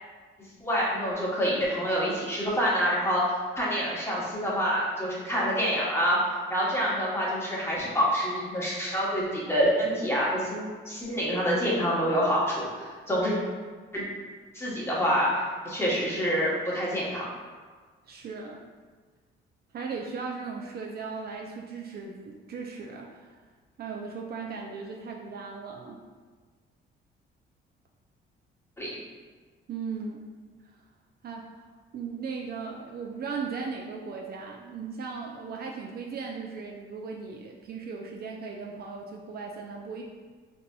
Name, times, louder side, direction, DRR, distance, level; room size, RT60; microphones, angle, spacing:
voice 1, 0.6-6.2 6.5-13.3 13.9-14.0 14.5-17.3 28.8-28.9, equal, 10° left, -6 dB, 1.1 m, -27 dB
voice 2, 18.1-18.6 19.7-23.3 23.8-26.0 29.7-30.3 31.2-31.5 31.9-40.0, right 5 dB, 50° right, 0 dB, 0.4 m, -37 dB
3.9 x 2.6 x 2.3 m, 1.5 s
cardioid pair, 90°, 20 cm